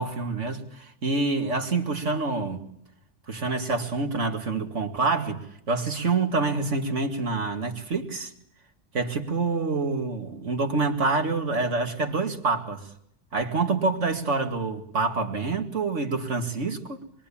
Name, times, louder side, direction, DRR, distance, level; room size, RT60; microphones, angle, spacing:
voice 1, 0.0-2.6 3.3-8.3 8.9-12.9 13.3-17.0, right 3 dB, 85° right, 2.7 m, -27 dB
26.5 x 22.5 x 8.7 m
omnidirectional pair, 1.2 m